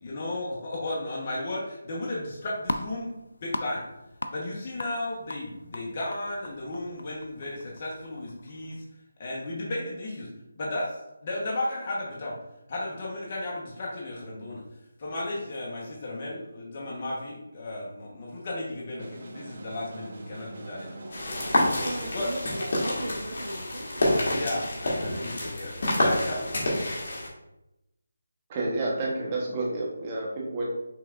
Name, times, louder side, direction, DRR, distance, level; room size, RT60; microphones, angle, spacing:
voice 1, 0.0-3.1 3.4-3.8 4.3-8.8 9.2-10.3 10.5-11.0 11.2-12.4 12.7-14.6 15.0-21.2 22.1-22.3 24.3-26.5, left 1 dB, 35° left, -4 dB, 1.0 m, -34 dB
sound 1, 2.1-8.8, left 2 dB, 80° left, 0.5 m, -40 dB
sound 2, 19.0-22.1, right 2 dB, 50° right, 0.9 m, -44 dB
sound 3, 21.1-27.3, left 1 dB, 50° left, 1.6 m, -28 dB
voice 2, 21.8-24.8, right 1 dB, 85° right, -3 dB, 0.9 m, -38 dB
voice 3, 28.5-30.6, right 2 dB, 25° right, -3 dB, 1.0 m, -29 dB
6.0 x 3.3 x 2.5 m, 0.90 s
figure-of-eight pair, 165°, 0 cm